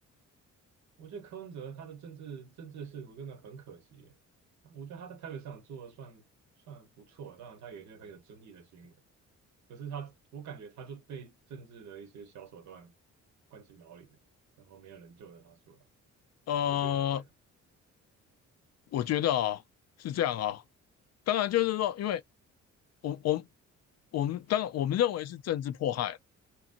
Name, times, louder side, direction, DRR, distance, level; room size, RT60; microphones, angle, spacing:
voice 1, 1.0-4.1 4.6-6.2 6.7-8.9 9.7-12.9 13.5-14.2 14.6-15.8 16.7-17.2, right 7 dB, 70° right, 0.9 m, -46 dB
voice 2, 16.5-17.2 18.9-19.6 20.0-20.6 21.3-22.2 23.0-23.4 24.1-26.2, left 11 dB, 60° left, 0.4 m, -29 dB
2.9 x 2.6 x 2.5 m
cardioid pair, 90°, 30 cm